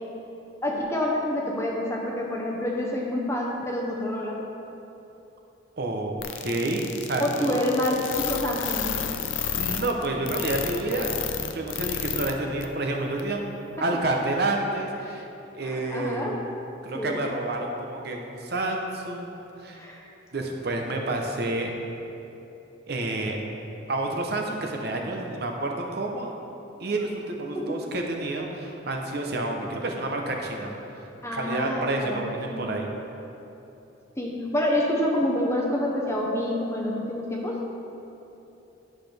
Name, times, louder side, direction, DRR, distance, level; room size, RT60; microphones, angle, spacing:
voice 1, 0.6-4.4 7.2-9.0 15.1-15.2 15.6-16.4 16.9-17.2 19.7-20.1 27.5-27.8 31.2-32.6 34.2-37.6, left 1 dB, 15° left, -2 dB, 0.8 m, -27 dB
voice 2, 5.8-6.1 6.4-7.6 9.1-9.2 9.5-11.2 11.5-15.3 15.5-16.4 16.8-19.8 20.3-21.7 22.9-23.4 23.9-26.3 26.8-32.9, right 2 dB, 55° right, 1 dB, 0.8 m, -29 dB
sound 1, 6.2-12.3 12.6-12.7 13.2-13.3, left 8 dB, 80° left, 0.5 m, -30 dB
11.0 x 6.1 x 3.4 m, 3.0 s
head